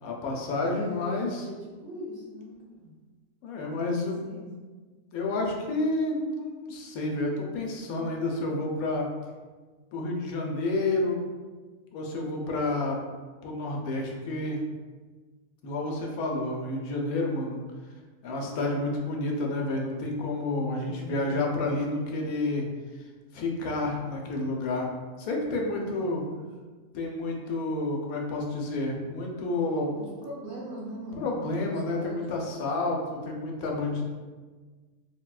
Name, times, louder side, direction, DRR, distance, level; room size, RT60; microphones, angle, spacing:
voice 1, 0.0-1.5 3.4-4.2 5.1-9.1 9.9-11.2 11.9-13.0 13.4-14.6 15.6-17.6 18.2-22.7 23.3-24.9 25.2-26.2 26.9-30.0 31.2-34.0, left 2 dB, 80° left, 0 dB, 1.0 m, -30 dB
voice 2, 0.7-2.9 3.5-4.5 20.8-21.3 26.0-26.4 29.9-31.3 31.7-32.4, right 1 dB, 70° right, -5 dB, 1.2 m, -42 dB
3.5 x 2.1 x 2.3 m, 1.4 s
omnidirectional pair, 1.5 m